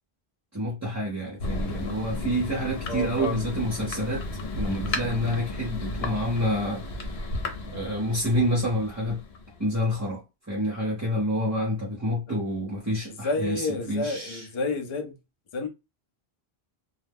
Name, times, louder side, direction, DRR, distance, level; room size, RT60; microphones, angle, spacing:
voice 1, 0.5-4.2 4.6-7.1 7.7-9.2 9.6-14.4, equal, 20° right, 0.6 m, -28 dB
Thunder, 1.4-9.7, left 2 dB, 80° left, 0.9 m, -34 dB
voice 2, 2.9-3.5 12.3-12.4 13.1-15.2 15.5-15.7, left 2 dB, 40° left, 0.5 m, -30 dB
2.3 x 2.0 x 3.4 m
omnidirectional pair, 1.0 m